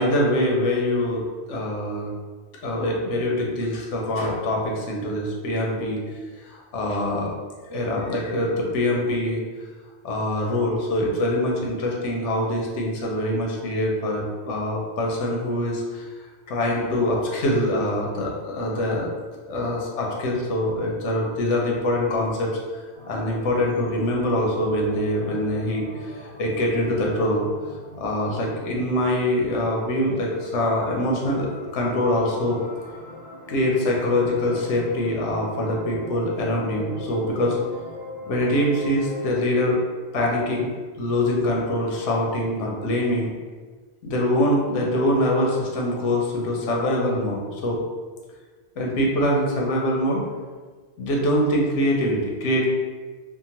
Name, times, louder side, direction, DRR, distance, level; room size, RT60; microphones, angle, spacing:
voice 1, 0.0-2.1 2.6-6.0 6.4-7.3 7.7-9.4 10.0-16.1 16.5-19.1 19.5-22.5 23.1-27.5 28.0-31.5 31.7-32.6 33.5-37.6 38.3-39.8 40.1-40.7 41.0-43.3 44.0-47.8 48.8-50.2 51.0-52.7, left 1 dB, 80° left, -1 dB, 1.0 m, -24 dB
sound 1, 22.9-39.3, equal, 60° right, 0.5 m, -42 dB
2.8 x 2.2 x 2.8 m, 1.4 s
omnidirectional pair, 1.2 m